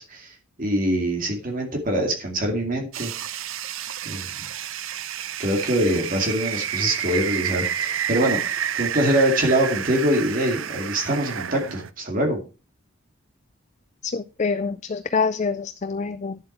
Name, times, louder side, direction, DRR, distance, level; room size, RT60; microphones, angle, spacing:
voice 1, 0.0-3.1 4.1-4.5 5.4-12.4, right 1 dB, 40° right, 2 dB, 2.4 m, -24 dB
sound 1, 2.9-11.9, right 9 dB, 65° right, 0.6 m, -30 dB
voice 2, 14.1-16.4, left 4 dB, 35° left, 11 dB, 0.4 m, -26 dB
10.5 x 7.7 x 4.6 m, 0.34 s
head